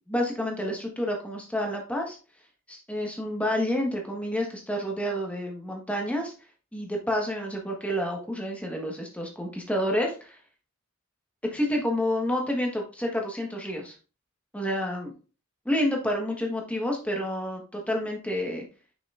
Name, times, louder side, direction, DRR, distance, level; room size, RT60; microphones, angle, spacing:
voice 1, 0.1-2.2 2.7-6.3 6.7-10.4 11.5-13.9 14.5-15.1 15.6-18.6, equal, 5° left, 0 dB, 1.3 m, -29 dB
6.3 x 6.1 x 2.5 m, 0.35 s
head